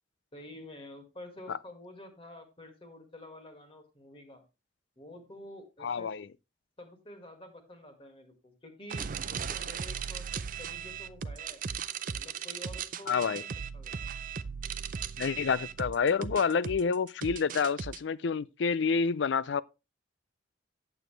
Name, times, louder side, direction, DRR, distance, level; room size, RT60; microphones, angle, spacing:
voice 1, 0.3-4.4 5.0-6.1 6.8-11.6 12.1-14.1, left 1 dB, 30° left, 2.1 m, -49 dB
voice 2, 5.8-6.3 13.1-13.4 15.2-19.6, left 5 dB, 75° left, 0.4 m, -28 dB
sound 1, 8.9-18.0, right 7 dB, 45° right, 0.5 m, -37 dB
9.2 x 8.0 x 3.2 m
head